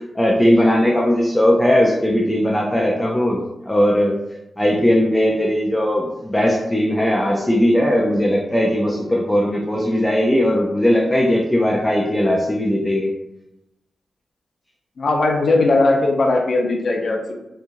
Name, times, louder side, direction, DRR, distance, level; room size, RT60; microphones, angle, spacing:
voice 1, 0.0-3.4 3.7-4.2 4.6-13.1, equal, 15° left, -2 dB, 0.4 m, -18 dB
voice 2, 15.0-17.3, left 2 dB, 65° left, 1 dB, 0.6 m, -18 dB
2.9 x 2.3 x 2.6 m, 0.90 s
cardioid pair, 55°, 0 cm